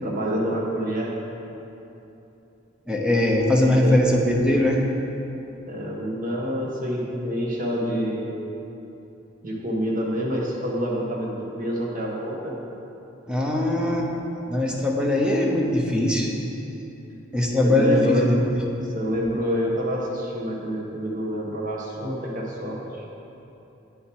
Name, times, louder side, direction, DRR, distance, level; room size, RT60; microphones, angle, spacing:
voice 1, 0.0-1.2 3.8-4.0 5.7-8.3 9.4-12.6 17.6-18.3 18.8-23.1, equal, 45° right, -2 dB, 1.4 m, -27 dB
voice 2, 2.9-4.8 13.3-14.1 14.5-16.3 17.3-18.4, left 1 dB, 5° right, -1 dB, 0.9 m, -21 dB
8.6 x 7.1 x 4.7 m, 3.0 s
head